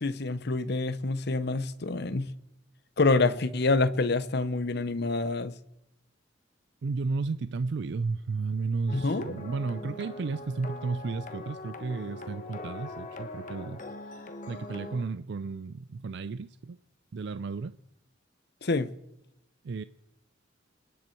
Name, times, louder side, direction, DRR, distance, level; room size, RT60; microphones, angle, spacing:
voice 1, 0.0-2.3 3.0-5.5 8.9-9.3 18.6-18.9, left 3 dB, 60° left, 0.8 m, -27 dB
voice 2, 6.8-13.8 14.5-16.8 17.1-17.8 19.6-19.8, right 4 dB, 60° right, 0.4 m, -33 dB
sound 1, 8.9-15.0, left 2 dB, 40° left, 1.3 m, -42 dB
26.0 x 10.5 x 4.6 m
head